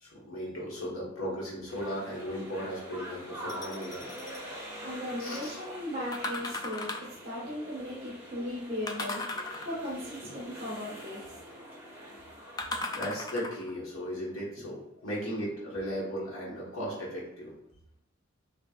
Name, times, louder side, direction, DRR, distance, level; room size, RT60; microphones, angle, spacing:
voice 1, 0.0-4.1 5.2-5.6 12.9-17.5, equal, 90° left, -6 dB, 1.3 m, -36 dB
sound 1, 1.7-13.0, equal, 10° right, 1.4 m, -45 dB
sound 2, 3.5-4.4 6.1-7.2 8.9-10.0 12.6-13.7 14.4-14.5, left 2 dB, 20° left, 0.3 m, -37 dB
voice 2, 4.6-11.4, left 1 dB, 30° right, -6 dB, 1.4 m, -38 dB
6.9 x 2.4 x 2.4 m, 0.80 s
head